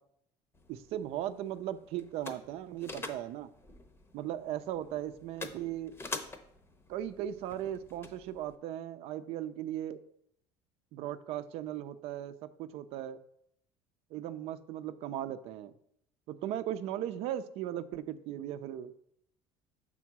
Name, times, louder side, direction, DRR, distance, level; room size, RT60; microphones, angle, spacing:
sound 1, 0.5-8.6, left 3 dB, 20° left, 0.8 m, -47 dB
voice 1, 0.7-3.5 4.1-5.9 6.9-10.0 10.9-13.2 14.1-15.7 16.3-18.9, right 11 dB, 70° right, 11 dB, 0.5 m, -37 dB
6.2 x 3.8 x 5.9 m, 0.72 s
cardioid pair, 115°, 11 cm